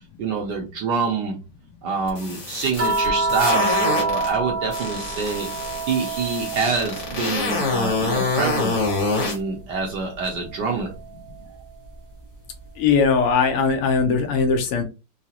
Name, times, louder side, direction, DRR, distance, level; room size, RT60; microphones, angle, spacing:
voice 1, 0.2-1.4 1.8-5.5 5.8-8.8 9.1-10.9, right 4 dB, 65° right, 1 dB, 1.1 m, -26 dB
sound 1, 2.1-4.3 4.7-9.4, left 3 dB, 60° left, 2.1 m, -26 dB
sound 2, 2.8-7.3 7.6-9.3 10.8-10.9, right 3 dB, 15° right, 0.4 m, -27 dB
voice 2, 12.8-14.8, left 5 dB, 85° left, 6 dB, 1.6 m, -19 dB
4.7 x 2.0 x 2.8 m, 0.29 s
omnidirectional pair, 2.4 m